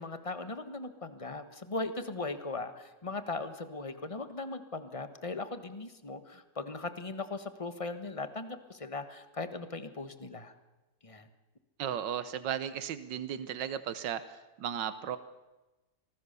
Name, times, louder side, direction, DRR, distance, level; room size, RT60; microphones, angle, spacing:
voice 1, 0.0-10.5 11.0-11.3, left 3 dB, 20° left, 10 dB, 1.3 m, -39 dB
voice 2, 11.8-15.2, right 9 dB, 90° right, 13 dB, 1.6 m, -35 dB
26.0 x 19.5 x 6.9 m, 1.1 s
omnidirectional pair, 1.9 m